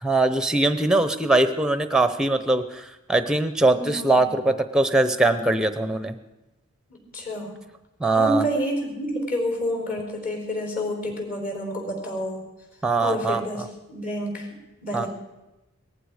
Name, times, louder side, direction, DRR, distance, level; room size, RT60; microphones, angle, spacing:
voice 1, 0.0-6.2 8.0-8.4 12.8-13.4 14.9-15.1, right 2 dB, 5° right, 10 dB, 0.7 m, -21 dB
voice 2, 3.7-4.3 6.9-7.5 8.1-12.4 13.0-14.5 14.8-15.1, equal, 40° left, 2 dB, 4.5 m, -29 dB
18.5 x 14.5 x 5.0 m, 1.0 s
head